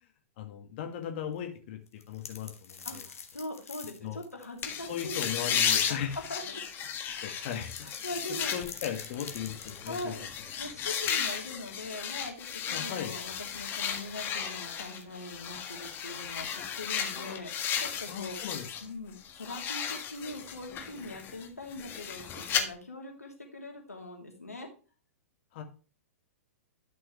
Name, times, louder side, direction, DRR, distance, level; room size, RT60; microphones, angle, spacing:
voice 1, 0.4-3.0 4.0-4.2 4.9-6.2 7.2-7.9 8.5-10.1 12.7-13.1 18.1-18.7 25.5-25.6, left 9 dB, 45° left, 5 dB, 1.9 m, -37 dB
sound 1, 1.9-5.4 5.8-5.9 6.7-10.0, left 6 dB, 70° left, 1.6 m, -46 dB
voice 2, 2.8-5.4 5.7-6.6 7.1-7.5 7.8-8.5 9.9-10.3 10.6-18.4 18.8-24.7, left 2 dB, 85° left, 1 dB, 3.1 m, -42 dB
sound 2, 4.6-18.9 19.2-22.6, left 8 dB, 25° left, 1.6 m, -34 dB
11.5 x 6.1 x 3.3 m, 0.35 s
figure-of-eight pair, 110°, 8 cm